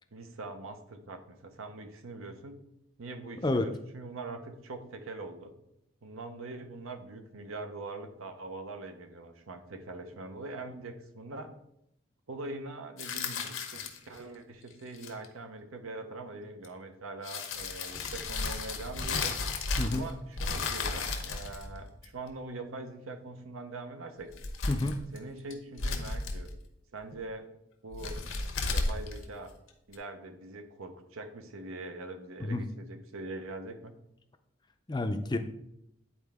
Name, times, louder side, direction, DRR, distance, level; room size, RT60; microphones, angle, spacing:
voice 1, 0.1-2.6 3.0-5.5 6.0-11.5 12.3-19.3 19.9-24.3 25.1-26.5 26.9-27.5 27.8-28.2 28.7-29.5 29.9-34.0, right 2 dB, 90° right, 7 dB, 0.9 m, -43 dB
sound 1, 13.0-14.2 14.9-15.3 16.6-16.7 17.2-20.1 20.4-22.3 24.2-25.2 25.5-26.6 27.9-29.9, left 3 dB, 85° left, 1.0 m, -34 dB
voice 2, 19.8-20.1 24.7-25.0 32.4-32.6 34.9-35.4, left 2 dB, 20° left, 7 dB, 0.4 m, -29 dB
9.7 x 4.3 x 3.6 m, 0.79 s
head